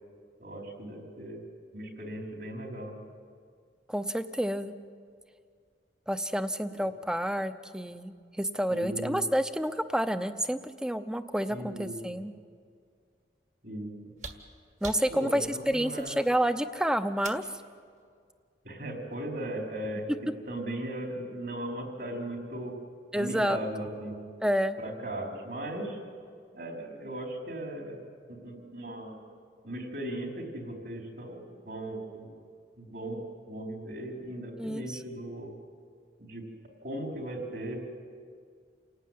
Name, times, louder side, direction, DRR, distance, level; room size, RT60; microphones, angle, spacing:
voice 1, 0.4-1.4 1.7-2.9 6.7-6.9 8.7-9.2 11.5-12.2 13.6-13.9 15.1-16.1 18.6-20.1 20.5-22.8 23.1-24.2 24.8-26.0 26.5-28.0 28.3-29.2 29.6-32.4 32.8-33.2 33.5-35.5 36.2-36.5 36.8-37.8, right 1 dB, 65° right, 1 dB, 4.6 m, -37 dB
voice 2, 3.9-4.7 6.1-12.3 14.8-17.5 23.1-23.6 24.4-24.8 34.6-35.0, equal, 5° right, 11 dB, 0.7 m, -29 dB
sound 1, 14.1-17.6 19.0-19.1, right 4 dB, 45° right, 1.6 m, -45 dB
28.5 x 18.0 x 9.4 m, 2.2 s
head